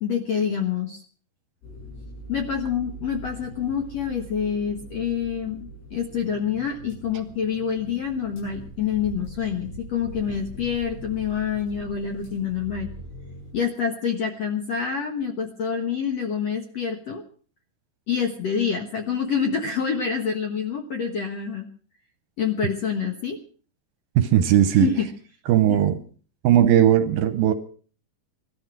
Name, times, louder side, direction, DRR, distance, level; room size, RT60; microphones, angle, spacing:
voice 1, 0.0-1.0 2.3-12.9 13.5-17.2 18.1-21.7 22.4-23.4 24.7-25.1 25.7-25.8, left 7 dB, 60° left, 1.7 m, -27 dB
sound 1, 1.6-13.5, right 1 dB, 80° left, 9.6 m, -41 dB
voice 2, 24.2-24.9 25.5-26.0 26.4-27.5, right 11 dB, 75° right, 2.4 m, -18 dB
18.0 x 13.0 x 6.1 m
omnidirectional pair, 4.8 m